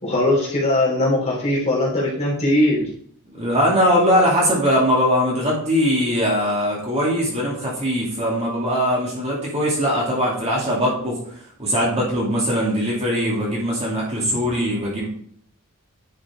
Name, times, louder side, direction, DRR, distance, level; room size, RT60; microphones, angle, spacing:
voice 1, 0.0-2.9, left 1 dB, 30° left, -6 dB, 3.6 m, -20 dB
voice 2, 3.3-11.2 11.6-15.1, equal, 30° right, -4 dB, 2.7 m, -21 dB
10.0 x 6.3 x 3.7 m, 0.62 s
head